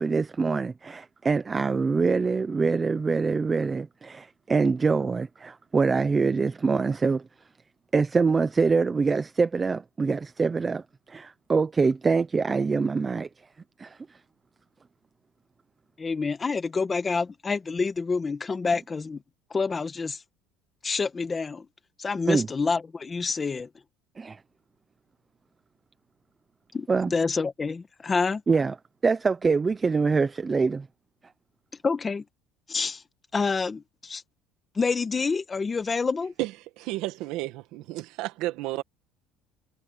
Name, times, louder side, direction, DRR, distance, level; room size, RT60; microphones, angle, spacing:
voice 1, 0.0-7.2 7.9-13.3 13.8-14.2 22.3-22.5 24.2-24.4 26.9-27.1 28.5-28.7 29.0-30.9, right 4 dB, 15° right, 0.6 m, -24 dB
voice 2, 16.0-19.2 19.5-20.2 20.8-21.7 22.0-23.7 26.7-28.4 31.8-32.2 32.7-33.0 33.3-34.2 34.7-36.3, left 4 dB, 15° left, 1.4 m, -27 dB
voice 3, 36.4-38.8, right 17 dB, 60° right, 1.8 m, -32 dB
cardioid pair, 165°, 0 cm